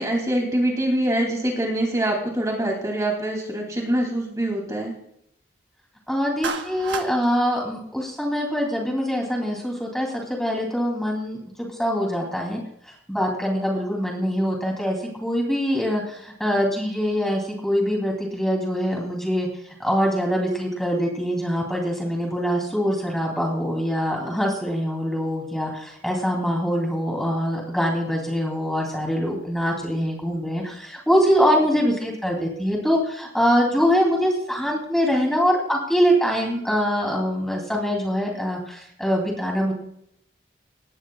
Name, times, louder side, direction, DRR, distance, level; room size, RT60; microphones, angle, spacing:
voice 1, 0.0-4.9, right 1 dB, 20° right, 0 dB, 2.8 m, -24 dB
voice 2, 6.1-12.6 12.9-19.5 19.8-39.7, equal, ahead, -1 dB, 3.0 m, -24 dB
Clapping, 6.4-7.1, right 5 dB, 85° right, 1.3 m, -30 dB
18.5 x 16.5 x 2.4 m, 0.71 s
head